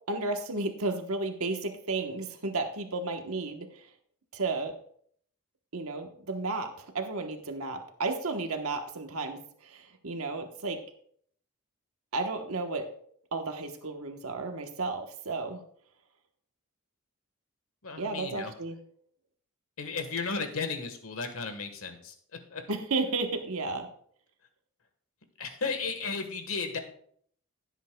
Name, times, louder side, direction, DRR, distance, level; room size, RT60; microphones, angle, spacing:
voice 1, 0.1-3.9 4.3-4.8 5.7-10.8 12.1-12.9 13.3-15.6 18.0-18.8 22.7-23.9, right 3 dB, 80° right, 5 dB, 1.1 m, -33 dB
voice 2, 17.8-18.5 19.8-22.6 25.4-26.8, left 4 dB, 70° left, 6 dB, 1.4 m, -34 dB
15.5 x 8.1 x 2.3 m, 0.62 s
head